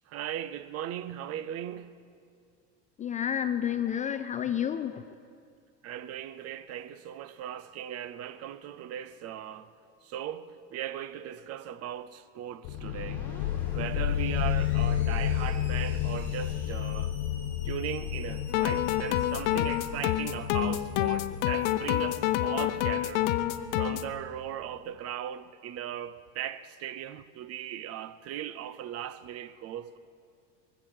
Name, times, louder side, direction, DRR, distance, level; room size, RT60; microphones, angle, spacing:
voice 1, 0.1-2.0 5.8-9.7 10.0-13.3 13.7-17.1 17.6-23.3 23.8-30.0, right 11 dB, 45° right, 0.7 m, -38 dB
voice 2, 3.0-5.1, left 9 dB, 20° left, 0.4 m, -30 dB
sound 1, 12.6-24.1, left 11 dB, 50° left, 0.7 m, -32 dB
Screech, 12.7-23.1, left 1 dB, 5° left, 3.9 m, -52 dB
sound 2, 18.5-24.1, left 13 dB, 80° left, 0.8 m, -28 dB
23.0 x 8.1 x 7.5 m
supercardioid pair, 125°, 36 cm